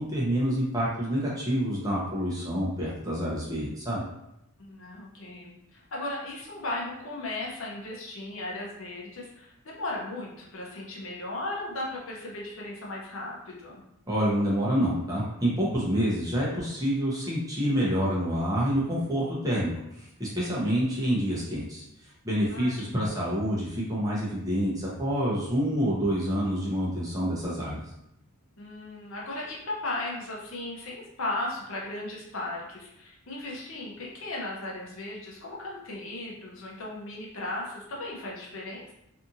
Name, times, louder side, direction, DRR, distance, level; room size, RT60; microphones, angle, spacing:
voice 1, 0.0-4.0 14.1-27.8, equal, 15° right, -6 dB, 0.7 m, -27 dB
voice 2, 4.6-13.8 22.4-23.2 28.6-38.9, left 2 dB, 65° left, -4 dB, 0.7 m, -36 dB
2.6 x 2.5 x 2.6 m, 0.83 s
head